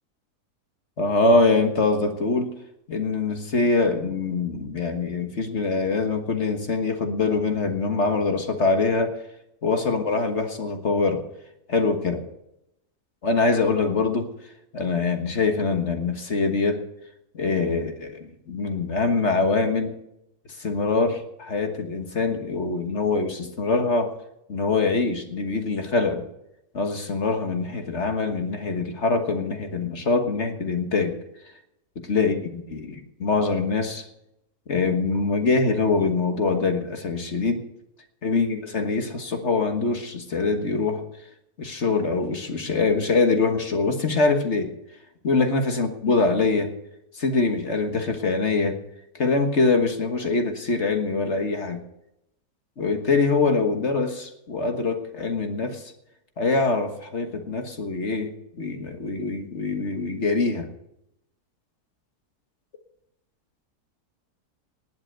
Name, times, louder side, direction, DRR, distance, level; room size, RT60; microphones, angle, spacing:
voice 1, 1.0-2.5 2.9-9.2 9.6-11.2 11.7-12.2 13.2-14.3 14.7-16.8 17.3-19.9 20.6-24.2 24.5-26.3 26.7-31.2 31.9-34.0 34.7-37.7 38.2-41.0 41.6-44.7 45.2-46.7 47.1-48.8 49.1-51.8 52.8-55.9 56.4-60.7, left 3 dB, 45° left, 5 dB, 1.7 m, -24 dB
19.5 x 8.0 x 6.5 m, 0.83 s
omnidirectional pair, 1.7 m